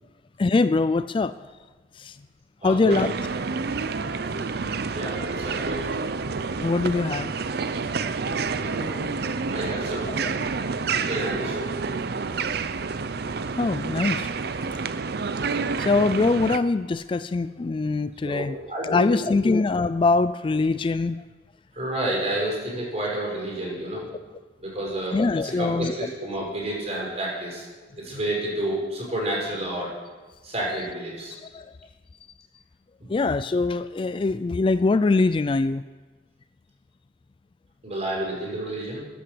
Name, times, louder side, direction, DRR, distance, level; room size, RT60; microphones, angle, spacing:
voice 1, 0.4-1.3 2.0-2.1 2.6-3.1 6.6-7.3 10.1-10.2 13.6-14.3 15.8-21.2 25.1-25.9 31.5-31.7 33.1-35.8, left 3 dB, 30° left, 13 dB, 0.3 m, -23 dB
voice 2, 2.6-3.0 3.9-4.1 4.9-5.8 8.2-9.1 9.5-10.3 10.9-11.7 18.2-19.1 21.8-24.1 24.6-27.6 28.0-29.9 30.4-31.3 37.8-39.1, right 1 dB, 40° right, -3 dB, 5.6 m, -30 dB
sound 1, 2.9-16.6, right 4 dB, 60° right, 0.6 m, -29 dB
13.5 x 9.7 x 7.8 m, 1.3 s
head